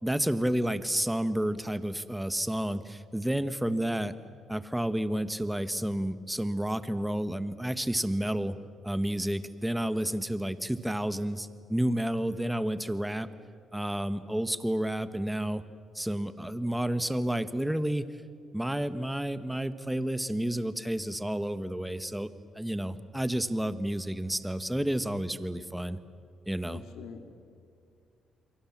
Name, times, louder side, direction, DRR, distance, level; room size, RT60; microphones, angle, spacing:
voice 1, 0.0-4.1 4.5-8.5 8.8-13.3 13.7-15.6 15.9-18.1 18.5-22.3 22.6-26.0 26.5-26.8, right 1 dB, 5° right, 12 dB, 1.2 m, -30 dB
voice 2, 26.7-27.4, left 6 dB, 90° left, 5 dB, 2.2 m, -45 dB
29.0 x 23.0 x 7.4 m, 2.4 s
cardioid pair, 90°, 0 cm